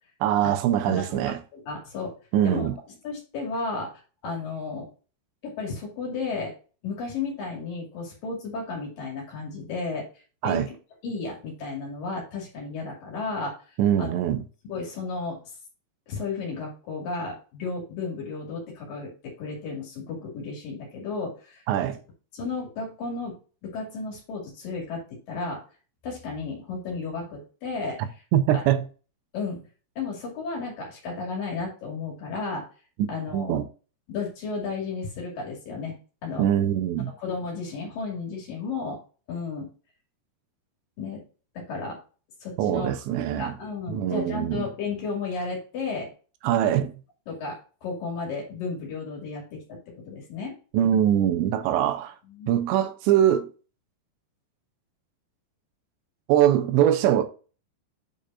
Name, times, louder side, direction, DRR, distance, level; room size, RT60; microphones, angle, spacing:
voice 1, 0.2-1.4 2.3-2.7 10.4-10.7 13.8-14.4 21.7-22.0 28.3-28.8 33.3-33.7 36.4-37.1 42.6-43.5 43.9-44.7 46.4-46.9 50.7-52.1 52.5-53.5 56.3-57.2, right 11 dB, 80° right, 3.0 m, -22 dB
voice 2, 0.9-2.1 2.4-2.7 3.0-3.9 4.2-4.9 5.4-6.5 6.8-10.1 10.4-10.7 11.0-13.6 14.0-14.2 14.6-15.4 16.1-21.6 22.3-23.4 23.6-25.6 26.0-28.0 28.5-28.6 29.3-29.6 30.0-32.6 33.1-33.6 34.1-36.0 36.2-36.5 37.2-39.0 39.3-39.7 41.0-41.2 41.6-42.0 42.4-43.0 43.4-46.1 46.7-46.8 47.3-49.8 50.1-50.6 52.3-52.6, left 4 dB, 55° left, 3.7 m, -33 dB
8.8 x 5.2 x 2.5 m
omnidirectional pair, 5.2 m